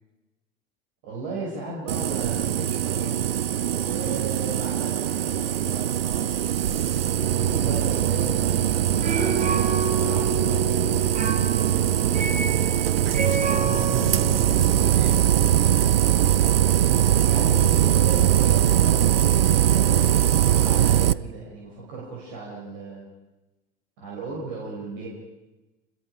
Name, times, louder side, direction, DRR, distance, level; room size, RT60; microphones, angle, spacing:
voice 1, 1.0-3.3 3.8-10.7 13.3-13.6 17.2-19.5 19.7-23.1 24.0-25.1, right 3 dB, 55° right, -4 dB, 6.3 m, -36 dB
sound 1, 1.9-21.1, right 11 dB, 75° right, 0.6 m, -21 dB
sound 2, 7.1-16.9, right 4 dB, 25° right, 2.0 m, -31 dB
voice 2, 12.2-12.7 13.4-15.8, equal, 5° left, -3 dB, 4.8 m, -43 dB
27.0 x 22.0 x 5.1 m, 1.1 s
figure-of-eight pair, 80°, 30 cm